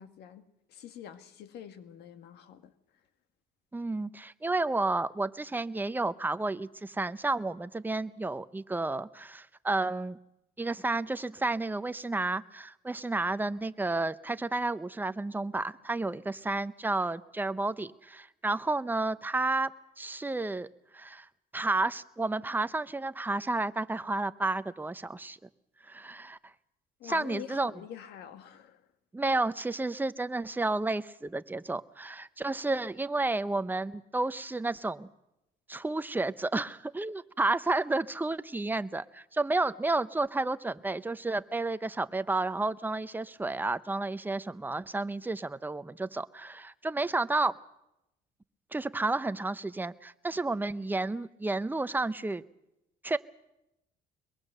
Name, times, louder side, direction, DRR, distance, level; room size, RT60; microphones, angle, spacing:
voice 1, 0.0-2.7 27.0-28.9, left 9 dB, 75° left, 1.8 m, -46 dB
voice 2, 3.7-10.2 10.6-19.7 20.0-20.7 20.9-21.3 21.5-25.4 25.8-26.4 27.0-27.7 29.1-35.1 35.7-47.5 48.7-52.4 53.0-53.2, right 2 dB, 10° right, 0.7 m, -31 dB
22.5 x 21.5 x 6.7 m
cardioid pair, 110°, 17 cm